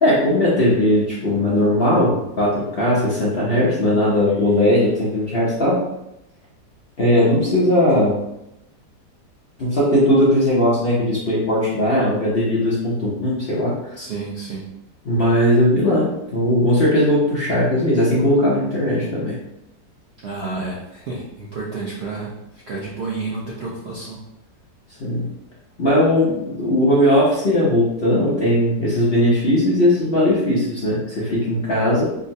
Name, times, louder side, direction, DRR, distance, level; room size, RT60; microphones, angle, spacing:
voice 1, 0.0-5.8 7.0-8.2 9.6-13.9 15.0-19.3 25.0-25.3 25.8-32.1, left 1 dB, 60° left, -7 dB, 0.6 m, -18 dB
voice 2, 14.0-14.6 20.2-22.4 22.7-24.2, right 3 dB, 90° right, -5 dB, 0.5 m, -30 dB
3.7 x 2.1 x 2.6 m, 0.85 s
omnidirectional pair, 1.9 m